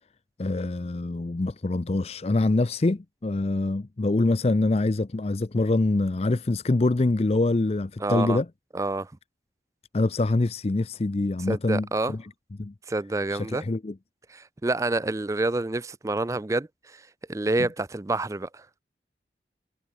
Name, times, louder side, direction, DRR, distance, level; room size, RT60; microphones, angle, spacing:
voice 1, 0.4-8.5 9.9-12.3 12.6-12.7 13.3-13.9, left 2 dB, 35° left, 0.5 m, -25 dB
voice 2, 8.0-8.4 8.7-9.1 11.5-12.2 12.9-13.6 14.3-18.7, right 2 dB, 15° right, 0.4 m, -28 dB
head